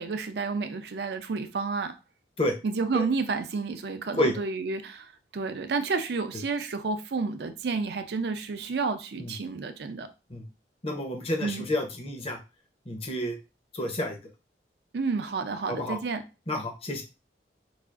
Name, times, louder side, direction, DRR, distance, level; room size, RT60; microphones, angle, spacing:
voice 1, 0.0-1.9 2.6-10.1 11.4-11.7 14.9-16.2, right 4 dB, 65° right, 0.5 m, -30 dB
voice 2, 10.8-12.4 12.9-13.4 13.7-14.2 15.7-16.0 16.5-17.0, left 1 dB, 35° left, 0.7 m, -29 dB
4.7 x 2.5 x 2.4 m
head